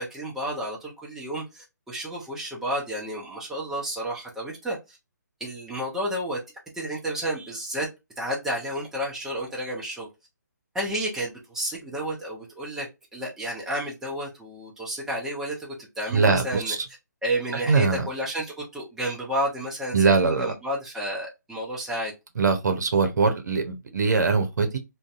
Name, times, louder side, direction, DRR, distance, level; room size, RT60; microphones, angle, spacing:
voice 1, 0.0-5.0 5.4-6.4 6.7-7.9 8.2-10.1 10.7-12.9 13.1-16.8 17.2-22.1, right 1 dB, 5° right, 0.6 m, -31 dB
voice 2, 16.1-16.8 17.5-18.1 19.9-20.5 22.4-24.8, right 4 dB, 70° right, 0.7 m, -22 dB
2.6 x 2.2 x 2.4 m
figure-of-eight pair, 145°, 10 cm